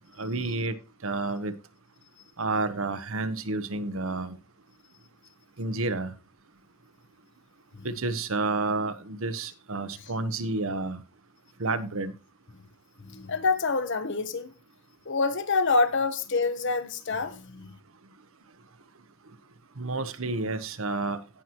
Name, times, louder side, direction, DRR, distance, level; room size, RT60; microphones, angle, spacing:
voice 1, 0.2-0.7 1.0-1.5 2.4-4.3 5.6-6.1 7.8-11.0 11.6-12.1 19.8-21.2, right 3 dB, 65° right, 1.0 m, -30 dB
voice 2, 13.1-14.5 15.1-17.7, left 4 dB, 55° left, 1.1 m, -26 dB
17.0 x 6.0 x 3.0 m
head